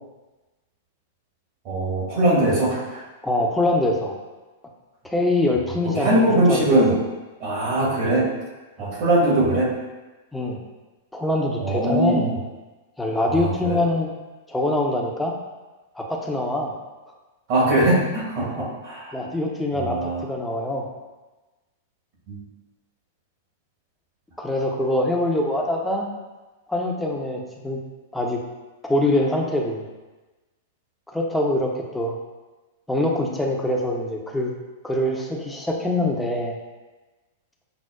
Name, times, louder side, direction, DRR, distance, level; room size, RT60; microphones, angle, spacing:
voice 1, 1.6-3.0 5.8-7.0 7.4-8.3 8.8-9.7 11.6-12.4 13.3-13.8 17.5-19.2 19.7-20.2 22.3-22.4, right 1 dB, 45° right, -5 dB, 1.4 m, -21 dB
voice 2, 3.2-4.1 5.0-7.0 8.8-9.0 10.3-10.6 11.1-12.3 13.0-14.1 14.5-15.3 16.0-16.7 18.4-18.7 19.1-20.9 24.4-26.1 26.7-27.8 28.1-28.4 28.8-29.8 31.1-32.2 32.9-34.5 34.8-36.6, left 1 dB, 5° left, 0 dB, 0.6 m, -24 dB
5.8 x 2.0 x 2.3 m, 1.2 s
hypercardioid pair, 100°, 0 cm